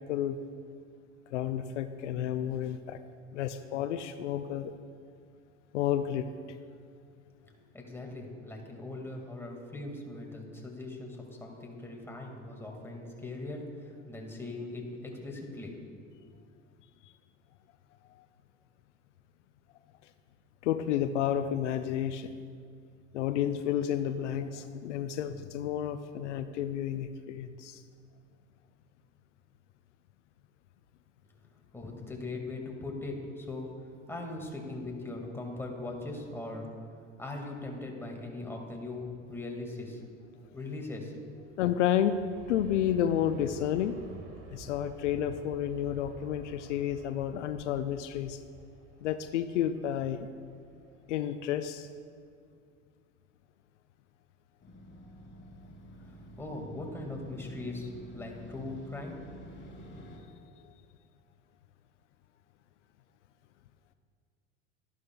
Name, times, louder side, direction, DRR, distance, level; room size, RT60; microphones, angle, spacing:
voice 1, 1.3-3.0 3.3-4.7 5.7-6.3 18.1-18.3 20.6-22.3 23.1-27.8 41.6-44.0 44.5-48.4 49.0-50.3 51.1-51.9 60.0-60.3, left 10 dB, 80° left, 10 dB, 0.5 m, -31 dB
voice 2, 7.4-15.7 31.7-33.7 34.1-36.7 37.2-40.0 40.5-41.5 56.0-59.2, left 2 dB, 5° left, 0 dB, 2.1 m, -40 dB
Aircraft, 41.1-52.0 52.4-52.5, right 3 dB, 60° right, 1.9 m, -51 dB
Motorcycle, 54.6-60.2, equal, 30° left, 2.4 m, -49 dB
12.5 x 11.0 x 2.3 m, 2.2 s
hypercardioid pair, 75°, 36 cm